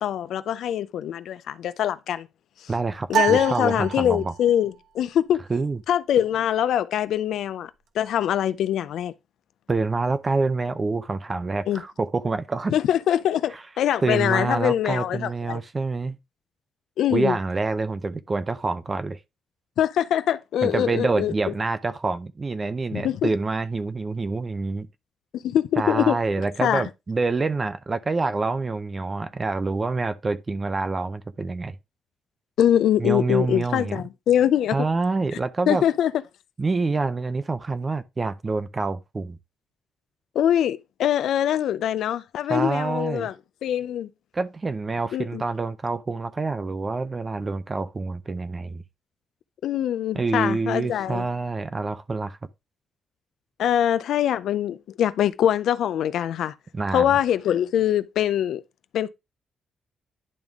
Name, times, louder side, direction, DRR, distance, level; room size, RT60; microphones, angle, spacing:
voice 1, 0.0-2.3 3.1-5.4 5.9-7.7 8.0-9.1 11.7-11.8 12.7-15.6 17.0-17.4 19.8-21.3 22.9-23.3 25.3-26.2 26.6-26.8 32.6-34.9 35.7-36.1 40.4-43.3 43.6-44.1 45.1-45.4 49.6-51.3 53.6-56.5 56.9-58.6 58.9-59.1, left 10 dB, 80° left, 0.4 m, -23 dB
voice 2, 2.7-4.3 5.5-5.8 9.7-12.7 13.5-13.6 14.0-16.2 17.1-19.2 20.6-24.9 25.8-31.8 33.0-34.0 34.7-35.8 36.6-39.4 42.5-43.3 44.3-48.8 50.1-52.4 56.7-57.1, right 3 dB, 25° right, 0.4 m, -26 dB
sound 1, 3.1-4.6, right 9 dB, 75° right, 0.9 m, -27 dB
10.5 x 3.6 x 3.5 m
cardioid pair, 135°, 0 cm